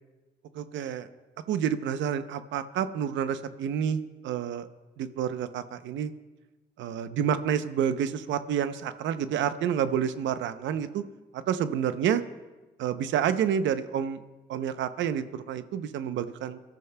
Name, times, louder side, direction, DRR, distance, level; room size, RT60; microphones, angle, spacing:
voice 1, 0.5-1.1 1.5-4.7 5.0-6.1 6.8-11.0 11.3-12.2 12.8-14.2 14.5-16.6, right 8 dB, 85° right, 12 dB, 0.6 m, -29 dB
24.0 x 13.0 x 2.2 m, 1.2 s
supercardioid pair, 60°, 19 cm